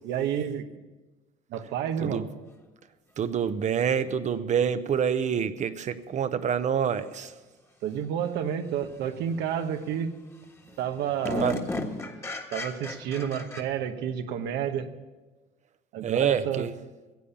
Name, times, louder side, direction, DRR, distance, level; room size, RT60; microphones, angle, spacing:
voice 1, 0.0-0.7 1.5-2.2 7.8-10.1 10.8-11.5 12.5-14.9 15.9-16.6, right 8 dB, 85° right, 7 dB, 1.1 m, -30 dB
voice 2, 3.2-7.4 11.4-11.5 16.0-16.7, right 8 dB, 45° right, 12 dB, 0.8 m, -27 dB
sound 1, 6.0-6.1 8.8-9.0 9.4-9.9 10.3-10.4 10.7-13.6, left 2 dB, 15° left, 1.5 m, -35 dB
15.5 x 8.5 x 7.1 m, 1.2 s
cardioid pair, 110°, 17 cm